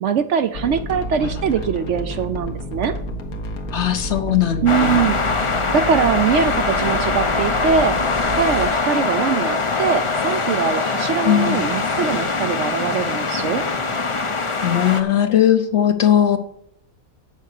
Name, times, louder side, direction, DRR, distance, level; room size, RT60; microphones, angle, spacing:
voice 1, 0.0-2.9 4.6-5.2 5.7-8.0 8.3-13.6, right 7 dB, 65° right, 11 dB, 0.8 m, -22 dB
sound 1, 0.5-8.7, equal, 90° left, 1.6 m, -30 dB
voice 2, 3.7-5.0 11.2-11.6 14.6-16.4, left 10 dB, 60° left, 8 dB, 0.9 m, -18 dB
sound 2, 4.7-15.0, left 4 dB, 35° left, 0.5 m, -22 dB
8.0 x 6.5 x 6.6 m, 0.71 s
omnidirectional pair, 1.5 m